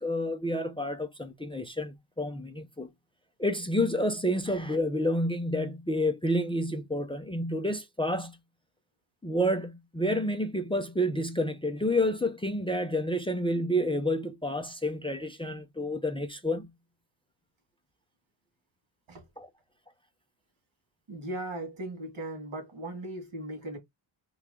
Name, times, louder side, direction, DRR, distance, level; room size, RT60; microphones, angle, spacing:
voice 1, 0.0-2.9 3.4-8.4 9.2-16.7 19.4-19.5, equal, 10° left, 0.4 m, -29 dB
voice 2, 21.1-23.8, right 1 dB, 90° right, 2.0 m, -38 dB
3.4 x 3.0 x 3.6 m
wide cardioid pair, 165°, 47 cm